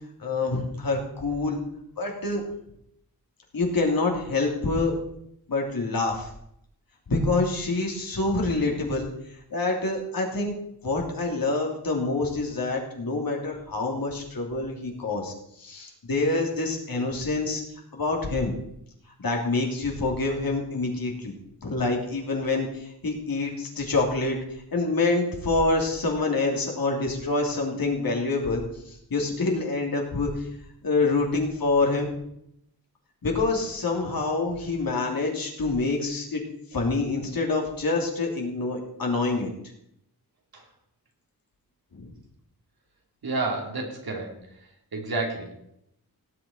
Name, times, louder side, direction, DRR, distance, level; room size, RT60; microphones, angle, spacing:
voice 1, 0.2-1.6 2.0-2.4 3.5-4.9 5.5-6.3 7.1-9.1 9.5-10.5 10.8-17.6 17.9-18.5 19.2-21.3 21.6-24.4 24.7-30.3 30.8-32.1 33.2-36.4 36.7-39.5 41.9-42.1, left 3 dB, 65° left, 0 dB, 3.0 m, -26 dB
voice 2, 43.2-44.6 44.9-45.5, right 3 dB, 70° right, 1 dB, 2.8 m, -30 dB
17.5 x 8.4 x 4.4 m, 0.74 s
wide cardioid pair, 115°, 38 cm